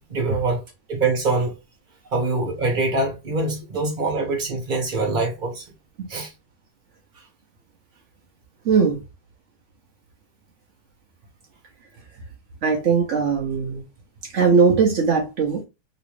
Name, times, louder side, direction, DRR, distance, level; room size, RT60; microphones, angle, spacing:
voice 1, 0.1-1.5 2.1-5.6 6.1-6.3, right 3 dB, 35° right, 0.9 m, -24 dB
voice 2, 8.6-9.0 12.6-13.8 14.3-15.6, right 5 dB, 85° right, 0.6 m, -19 dB
3.0 x 3.0 x 3.1 m
omnidirectional pair, 2.3 m